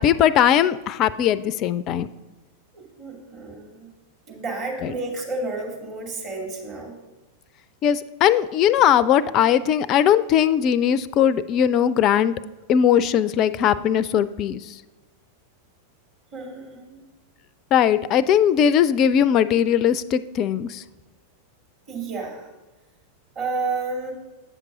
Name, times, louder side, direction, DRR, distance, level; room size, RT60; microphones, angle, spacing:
voice 1, 0.0-2.1 4.8-4.9 7.8-12.3 12.7-14.7 17.7-20.8, left 9 dB, 35° left, 17 dB, 0.4 m, -19 dB
voice 2, 2.7-3.9 4.3-6.9 16.3-17.0 21.9-22.5 23.3-24.1, right 3 dB, 35° right, -1 dB, 2.6 m, -31 dB
9.0 x 5.9 x 5.0 m, 1.1 s
figure-of-eight pair, 90°, 0 cm